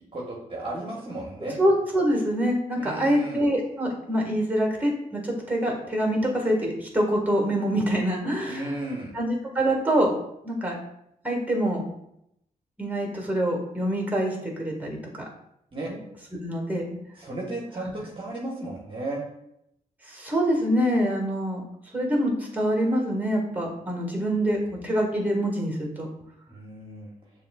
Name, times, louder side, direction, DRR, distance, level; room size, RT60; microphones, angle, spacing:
voice 1, 0.1-1.6 2.8-3.4 8.5-9.1 15.7-15.9 17.2-19.2 26.5-27.1, right 2 dB, 30° right, -4 dB, 1.2 m, -34 dB
voice 2, 1.6-8.7 9.1-10.1 10.4-10.7 11.2-11.8 12.8-15.2 15.9-16.0 16.4-17.0 20.1-21.6 21.9-26.1, equal, 10° right, 0 dB, 1.7 m, -25 dB
6.9 x 2.8 x 2.4 m, 0.79 s
supercardioid pair, 55°, 16 cm